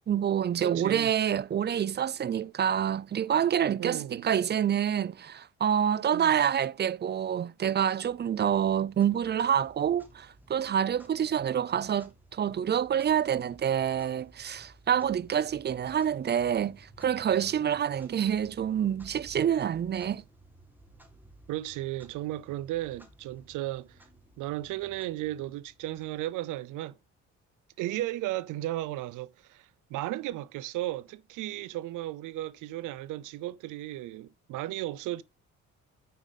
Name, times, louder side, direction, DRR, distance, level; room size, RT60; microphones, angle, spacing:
voice 1, 0.1-20.2, right 9 dB, 35° right, 0.4 m, -27 dB
voice 2, 0.6-1.1 3.8-4.2 6.1-6.4 21.5-24.0 24.4-27.0 27.8-35.2, right 15 dB, 85° right, 0.6 m, -35 dB
Clock, 8.0-26.7, right 2 dB, 5° right, 2.4 m, -57 dB
9.4 x 5.2 x 4.1 m
cardioid pair, 90°, 30 cm